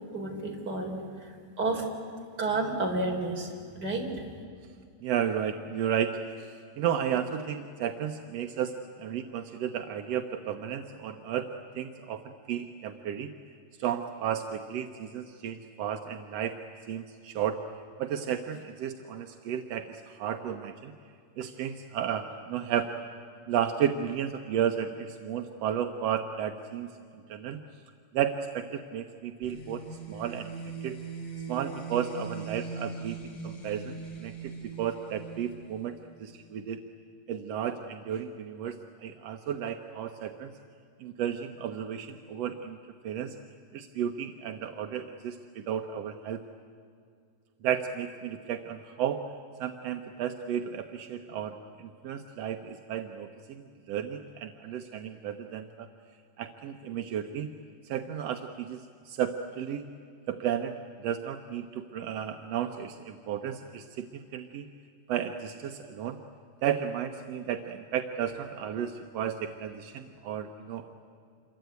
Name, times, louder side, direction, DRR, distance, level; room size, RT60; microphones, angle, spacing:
voice 1, 0.1-1.9 2.4-3.5 3.8-4.1, right 2 dB, 30° right, 1 dB, 4.2 m, -31 dB
voice 2, 5.0-13.3 13.8-16.6 16.9-17.6 18.0-20.9 21.4-22.9 23.5-26.9 27.3-27.6 28.1-30.5 30.8-31.0 31.5-34.5 34.8-35.9 36.2-36.8 37.3-40.5 41.0-42.8 43.0-43.3 43.7-46.4 47.6-49.2 49.6-55.9 56.4-57.5 57.8-59.9 60.3-64.7 65.1-66.2 66.6-70.9, right 9 dB, 70° right, 6 dB, 1.6 m, -33 dB
sound 1, 29.4-36.1, right 4 dB, 50° left, 3.6 m, -40 dB
27.5 x 23.0 x 9.3 m, 2.3 s
omnidirectional pair, 3.9 m